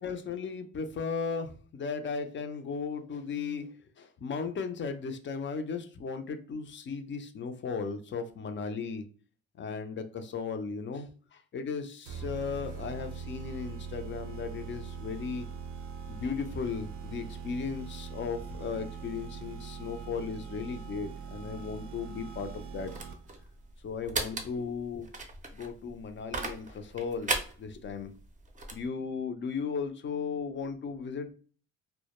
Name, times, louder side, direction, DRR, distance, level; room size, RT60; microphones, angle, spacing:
voice 1, 0.0-9.0 9.6-15.5 16.1-22.9 23.8-25.1 25.5-28.1 28.7-31.3, left 5 dB, 40° left, 7 dB, 0.4 m, -36 dB
sound 1, 12.1-23.4, right 6 dB, 90° right, 0.5 m, -42 dB
sound 2, 22.3-28.9, right 3 dB, 25° right, 0.5 m, -38 dB
2.2 x 2.1 x 2.9 m, 0.39 s
cardioid pair, 90°, 30 cm